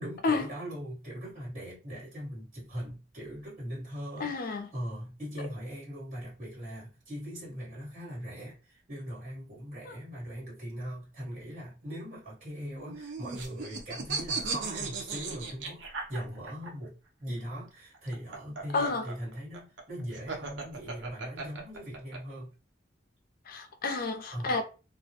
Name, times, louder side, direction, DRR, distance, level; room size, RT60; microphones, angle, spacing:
voice 1, 0.0-15.8 16.1-22.5 24.3-24.6, equal, 40° right, 1.3 m, -40 dB
voice 2, 4.2-4.7 9.9-10.0 18.7-19.1 23.5-24.6, left 3 dB, 50° left, 0.4 m, -30 dB
sound 1, 12.7-16.7 17.9-22.2, right 4 dB, 80° right, 0.5 m, -36 dB
2.2 x 2.1 x 2.7 m
head